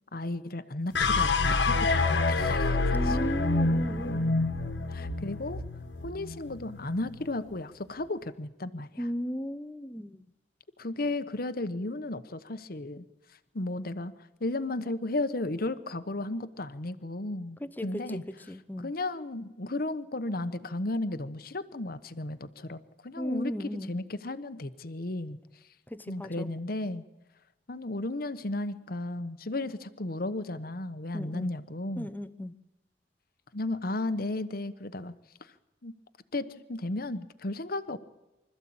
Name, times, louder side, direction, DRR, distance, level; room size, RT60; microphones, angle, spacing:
voice 1, 0.1-2.8 3.0-3.2 4.9-5.6 6.0-9.1 10.8-13.0 13.5-14.1 14.4-18.2 18.8-25.4 26.1-27.0 27.7-32.1 33.5-35.1 35.4-35.5 35.8-35.9 36.3-38.0, left 2 dB, 55° left, 11 dB, 1.1 m, -34 dB
sound 1, 0.9-7.3, left 3 dB, 75° left, 1.7 m, -27 dB
voice 2, 2.9-4.3 9.0-10.2 17.6-18.9 23.2-24.0 25.9-26.5 31.1-31.5 32.0-32.5, equal, 10° left, 12 dB, 0.9 m, -36 dB
25.0 x 14.0 x 8.7 m, 1.0 s
head